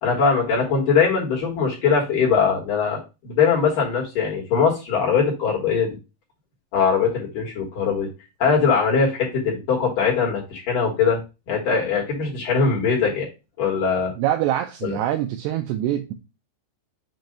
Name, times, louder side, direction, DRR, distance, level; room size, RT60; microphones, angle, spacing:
voice 1, 0.0-3.0 3.2-6.0 6.7-8.1 8.4-11.2 11.5-13.3 13.6-14.1 14.8-15.0, left 5 dB, 60° left, 2.7 m, -21 dB
voice 2, 14.2-16.1, right 12 dB, 90° right, 2.4 m, -24 dB
7.5 x 2.6 x 5.1 m
omnidirectional pair, 5.4 m